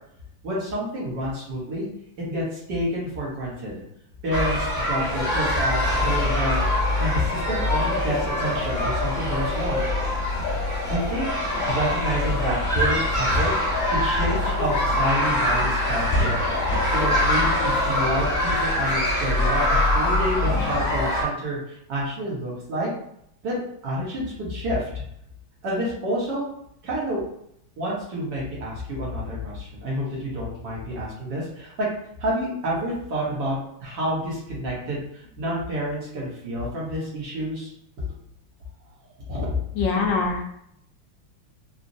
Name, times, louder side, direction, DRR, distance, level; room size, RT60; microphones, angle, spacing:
voice 1, 0.4-1.9 2.2-3.7 4.2-6.6 7.0-9.9 10.9-11.3 11.7-16.5 16.9-22.9 23.4-25.0 25.6-26.4 26.8-27.2 27.8-31.9 32.2-35.0 35.4-37.7 39.3-39.7, equal, 65° right, -5 dB, 1.6 m, -29 dB
sound 1, 4.3-21.2, left 1 dB, 15° left, 0.8 m, -23 dB
voice 2, 39.7-40.4, left 4 dB, 75° left, 1 dB, 1.2 m, -23 dB
4.0 x 2.1 x 2.6 m, 0.72 s
omnidirectional pair, 2.2 m